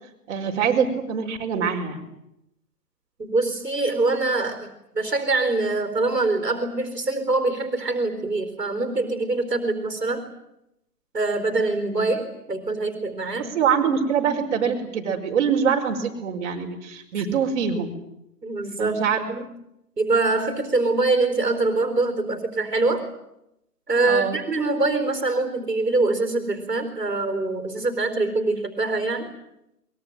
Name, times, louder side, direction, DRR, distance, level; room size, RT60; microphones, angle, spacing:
voice 1, 0.3-2.0 11.9-12.0 13.5-17.9 18.8-19.2 24.0-24.4, right 7 dB, 45° right, 1 dB, 5.1 m, -24 dB
voice 2, 3.2-10.3 11.1-13.5 18.4-19.0 19.3-19.5 20.0-23.1 23.9-29.3, right 3 dB, 85° right, 8 dB, 4.5 m, -24 dB
23.0 x 22.5 x 9.1 m, 0.84 s
figure-of-eight pair, 125°, 47 cm